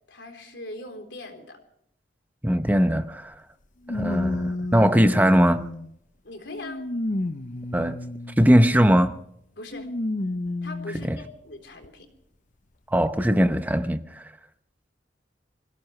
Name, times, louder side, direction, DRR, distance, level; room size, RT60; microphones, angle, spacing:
voice 1, 0.1-1.6 6.2-6.9 9.6-9.9 10.6-12.1, left 2 dB, 85° left, 3.8 m, -40 dB
voice 2, 2.4-3.3 3.9-5.7 7.7-8.0 8.4-9.2 11.1-11.2 12.9-14.2, equal, 10° right, 0.8 m, -20 dB
sound 1, 2.7-2.8 3.9-5.9 6.5-8.5 9.7-11.1 11.8-11.9 13.1-13.2, left 2 dB, 45° left, 0.8 m, -30 dB
25.5 x 17.0 x 3.3 m
head